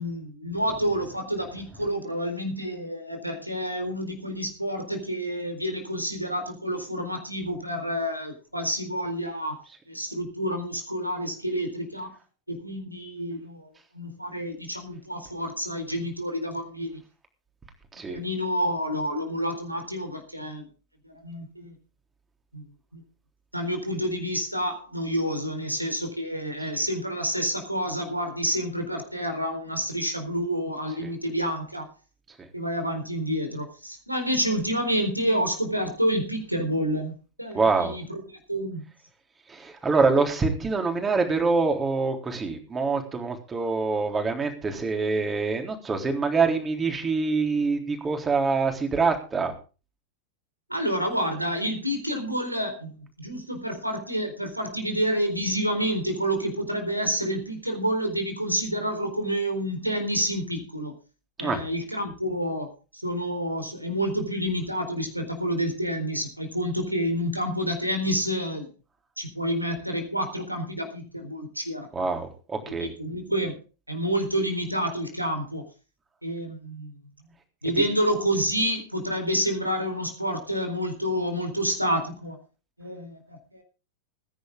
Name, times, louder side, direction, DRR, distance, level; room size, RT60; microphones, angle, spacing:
voice 1, 0.0-9.6 9.9-12.1 12.5-13.7 13.9-17.0 18.1-20.7 21.0-21.7 22.5-22.6 22.9-23.0 23.5-31.9 32.5-38.2 38.5-38.8 50.7-60.9 61.4-68.7 69.2-72.1 72.7-73.6 73.9-75.7 76.2-76.9 77.6-82.4 82.8-83.6, equal, 90° right, 5 dB, 4.1 m, -29 dB
voice 2, 37.5-37.9 39.5-49.5 61.4-61.6 71.9-72.3 72.7-72.9, right 4 dB, 15° right, 4 dB, 3.8 m, -25 dB
20.5 x 10.5 x 3.7 m, 0.34 s
figure-of-eight pair, 90°, 0 cm